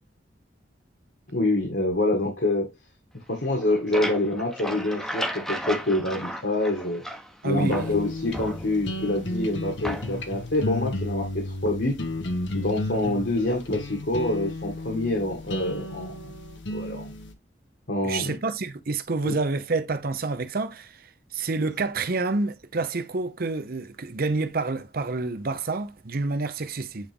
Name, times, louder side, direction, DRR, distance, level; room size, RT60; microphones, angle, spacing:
voice 1, 1.3-2.7 3.3-7.0 7.4-12.0 12.5-16.2 16.7-17.1 17.9-18.3 19.2-19.3, left 2 dB, 65° left, 1.9 m, -26 dB
sound 1, 3.4-7.4 7.7-9.0 9.8-10.4, equal, 5° left, 0.9 m, -34 dB
voice 2, 7.4-7.9 13.0-13.2 18.0-21.0 21.3-27.1, right 3 dB, 55° right, 0.7 m, -28 dB
sound 2, 7.6-17.3, left 1 dB, 85° left, 1.2 m, -33 dB
8.7 x 3.6 x 3.6 m
head